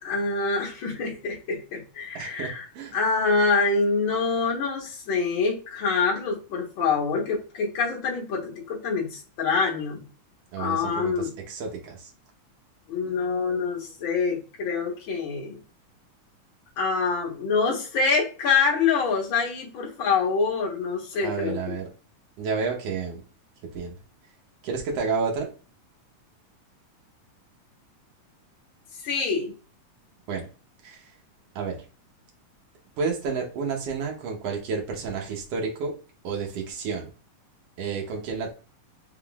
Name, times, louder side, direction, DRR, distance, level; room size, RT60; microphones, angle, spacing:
voice 1, 0.0-2.7 2.9-10.0 10.6-11.3 12.9-15.6 16.8-21.8 29.0-29.5, left 4 dB, 55° left, -2 dB, 1.5 m, -26 dB
voice 2, 2.1-3.0 10.5-12.1 21.2-21.9 22.4-23.2 23.7-24.0 24.6-25.5 30.3-30.5 30.8-31.1 31.5-31.8 33.0-35.9 36.2-37.1 37.8-38.5, right 5 dB, 65° right, 1 dB, 1.5 m, -30 dB
5.1 x 3.6 x 2.4 m, 0.35 s
omnidirectional pair, 4.0 m